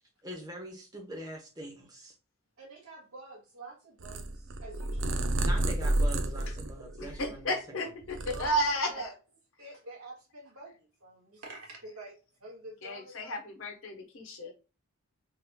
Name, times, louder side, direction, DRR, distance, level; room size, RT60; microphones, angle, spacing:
voice 1, 0.2-2.1 5.4-7.9, right 1 dB, 15° right, 0.9 m, -43 dB
voice 2, 2.6-5.4 8.2-9.1 9.6-12.1 12.4-13.4, right 3 dB, 85° right, 1.6 m, -47 dB
Purr, 4.0-7.5 7.9-9.0, right 1 dB, 60° right, 0.5 m, -31 dB
voice 3, 7.0-9.1 12.8-14.5, equal, 70° left, 1.0 m, -33 dB
3.6 x 3.0 x 2.2 m
head